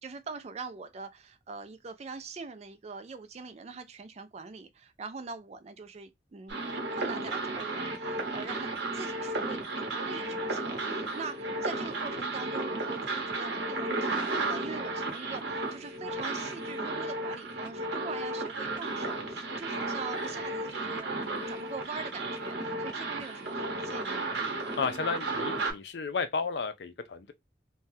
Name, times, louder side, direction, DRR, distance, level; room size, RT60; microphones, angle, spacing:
voice 1, 0.0-24.4, right 4 dB, 35° right, 0.4 m, -43 dB
sound 1, 6.5-25.7, right 2 dB, 75° right, 0.9 m, -34 dB
voice 2, 24.8-27.3, left 5 dB, 70° left, 0.4 m, -33 dB
3.2 x 2.2 x 2.7 m
head